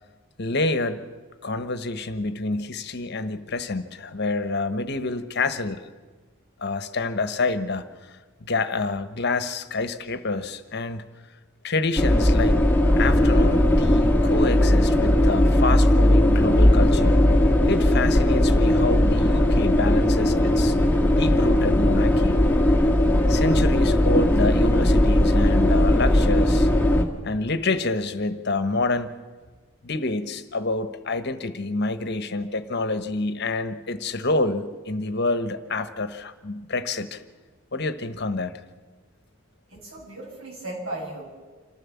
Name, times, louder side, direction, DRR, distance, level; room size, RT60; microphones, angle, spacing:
voice 1, 0.4-1.0 1.4-5.9 6.6-7.8 8.4-11.0 11.6-12.6 13.0-17.2 17.6-20.8 21.0-22.4 23.3-26.7 27.2-29.1 29.8-37.2 37.7-38.6, left 3 dB, 55° left, 10 dB, 1.1 m, -27 dB
sound 1, 12.0-27.0, left 1 dB, 10° left, 1.6 m, -18 dB
voice 2, 39.7-41.3, right 1 dB, 80° right, -3 dB, 7.8 m, -36 dB
27.0 x 14.5 x 7.2 m, 1.4 s
head